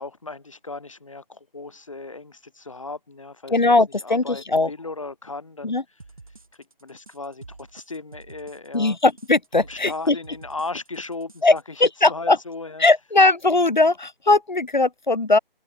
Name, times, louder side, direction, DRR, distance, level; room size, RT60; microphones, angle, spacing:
voice 1, 0.0-3.7 4.0-5.8 6.5-9.0 9.6-12.9, left 3 dB, 35° left, 6.9 m, -36 dB
voice 2, 3.5-4.7 5.6-5.8 8.7-10.2 11.4-11.5 11.8-12.4 12.8-15.4, left 3 dB, 50° left, 2.7 m, -19 dB
sound 1, 6.0-11.6, right 3 dB, 35° right, 5.4 m, -47 dB
figure-of-eight pair, 180°, 29 cm